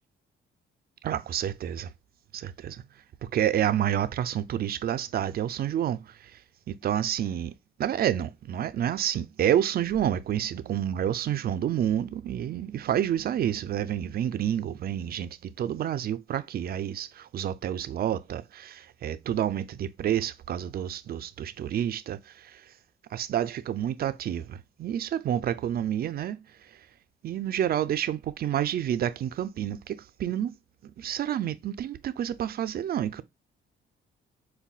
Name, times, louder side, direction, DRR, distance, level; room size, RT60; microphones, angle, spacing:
voice 1, 1.0-1.9 2.3-2.8 3.3-6.0 6.7-7.5 7.8-22.6 23.1-26.4 27.2-30.5 31.0-33.2, right 10 dB, 50° right, 0.4 m, -29 dB
5.3 x 2.2 x 2.3 m
cardioid pair, 90°, 20 cm